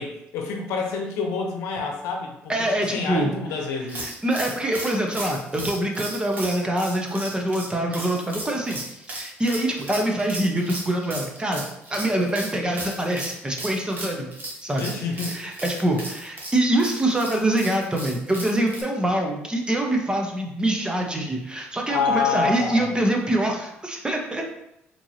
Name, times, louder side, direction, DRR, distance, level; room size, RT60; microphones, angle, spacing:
voice 1, 0.0-4.1 14.8-15.6 21.9-22.9, left 5 dB, 80° left, 2 dB, 0.8 m, -27 dB
voice 2, 2.5-3.3 4.0-11.6 11.9-14.3 14.6-14.8 15.3-24.4, right 1 dB, 15° right, 1 dB, 1.0 m, -25 dB
sound 1, 3.9-18.8, right 2 dB, 40° right, 1.5 m, -36 dB
4.4 x 3.1 x 2.8 m, 0.81 s
supercardioid pair, 70°, 5 cm